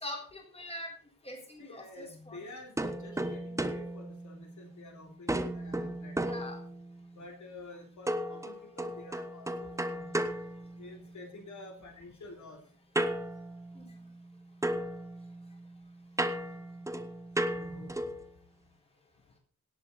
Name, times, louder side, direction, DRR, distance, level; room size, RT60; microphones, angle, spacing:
voice 1, 0.0-0.9 1.2-2.4 6.3-6.6 13.8-13.9, left 1 dB, 20° left, 0 dB, 4.1 m, -42 dB
voice 2, 1.6-6.4 7.1-10.1 10.8-12.6 17.5-18.1, left 2 dB, 60° left, 2 dB, 3.2 m, -49 dB
sound 1, 2.8-4.9 5.3-7.1 8.1-11.3 12.9-14.3 14.6-18.3, right 1 dB, 10° right, 0.9 m, -35 dB
17.5 x 8.4 x 4.0 m, 0.41 s
wide cardioid pair, 175°, 33 cm